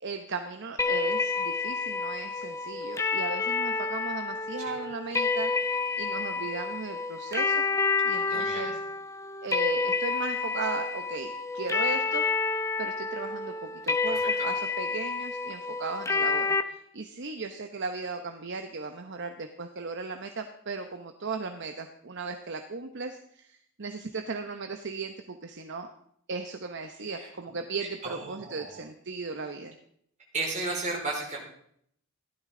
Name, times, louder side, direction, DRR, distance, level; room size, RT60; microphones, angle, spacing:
voice 1, 0.0-7.7 8.0-8.8 9.4-12.2 12.5-25.9 26.3-29.8, right 4 dB, 55° right, 6 dB, 0.9 m, -37 dB
sound 1, 0.8-16.6, left 4 dB, 15° left, 0.7 m, -29 dB
voice 2, 8.1-8.8 14.1-14.5 27.1-27.3 28.0-28.8 30.3-31.4, right 3 dB, 35° right, -2 dB, 4.7 m, -35 dB
15.5 x 12.5 x 3.8 m, 0.67 s
head